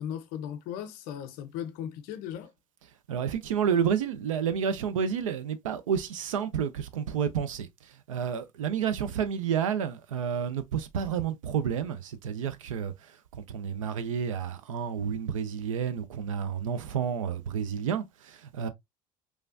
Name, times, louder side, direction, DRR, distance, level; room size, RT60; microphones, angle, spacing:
voice 1, 0.0-2.5, left 9 dB, 65° left, 0.6 m, -37 dB
voice 2, 3.1-7.7 8.1-12.9 13.5-18.7, right 7 dB, 85° right, 0.4 m, -30 dB
3.1 x 2.3 x 2.4 m
hypercardioid pair, 70°, 17 cm